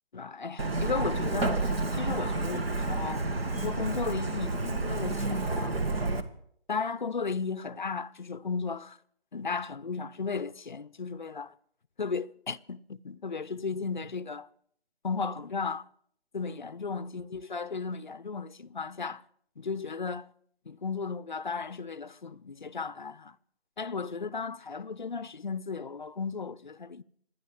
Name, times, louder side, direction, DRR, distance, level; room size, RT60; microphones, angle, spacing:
voice 1, 0.1-3.2 3.5-5.8 6.7-9.0 9.3-11.5 12.0-14.5 15.0-15.9 16.3-19.2 19.6-20.3 20.7-23.4 23.8-27.0, left 5 dB, 45° left, 0.6 m, -35 dB
Truck, 0.6-6.2, right 2 dB, 65° right, 1.9 m, -30 dB
27.0 x 10.5 x 4.9 m
figure-of-eight pair, 165°, 32 cm